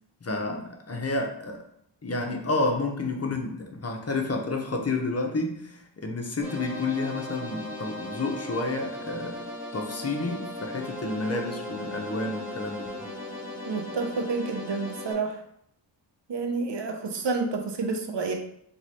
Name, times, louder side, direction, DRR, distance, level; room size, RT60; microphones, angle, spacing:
voice 1, 0.2-1.7 2.0-9.5 9.7-13.1, left 3 dB, 35° left, 3 dB, 0.8 m, -30 dB
sound 1, 6.4-15.1, left 1 dB, 5° right, 1.5 m, -37 dB
voice 2, 13.7-15.4 16.3-18.3, right 4 dB, 70° right, 4 dB, 0.8 m, -29 dB
3.0 x 3.0 x 4.3 m, 0.71 s
cardioid pair, 60°, 44 cm